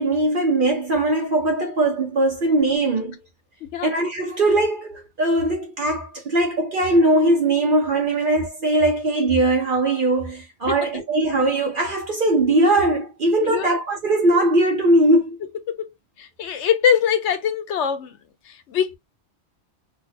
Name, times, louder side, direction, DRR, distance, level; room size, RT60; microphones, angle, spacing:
voice 1, 0.0-3.2 3.8-15.4, right 2 dB, 55° right, 0.8 m, -20 dB
voice 2, 13.4-13.8 15.7-15.9 16.2-18.2 18.4-19.0, left 8 dB, 80° left, 1.0 m, -23 dB
2.8 x 2.0 x 3.9 m
omnidirectional pair, 1.2 m